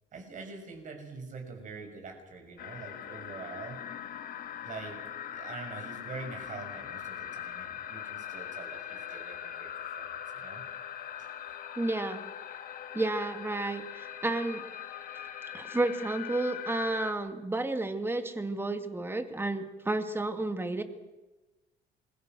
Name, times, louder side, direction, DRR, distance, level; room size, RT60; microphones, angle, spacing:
voice 1, 0.1-3.8 4.6-5.0 5.3-10.6 11.2-11.3, right 4 dB, 50° right, 3 dB, 7.0 m, -44 dB
sound 1, 2.6-17.1, left 9 dB, 60° left, 1.8 m, -41 dB
voice 2, 11.8-12.2 12.9-14.6 15.5-20.8, right 2 dB, 15° right, 7 dB, 2.2 m, -31 dB
28.0 x 22.0 x 6.3 m, 1.1 s
cardioid pair, 110°, 17 cm